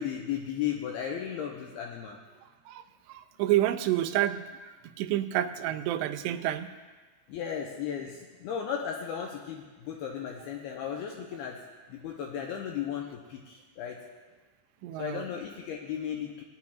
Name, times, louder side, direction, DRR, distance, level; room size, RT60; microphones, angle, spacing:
voice 1, 0.0-2.2 7.3-11.6 11.9-14.0 15.0-16.4, left 8 dB, 80° left, 0 dB, 2.4 m, -35 dB
voice 2, 3.1-6.7 14.8-15.3, right 13 dB, 85° right, 8 dB, 2.7 m, -29 dB
20.0 x 11.0 x 2.4 m, 1.3 s
omnidirectional pair, 4.8 m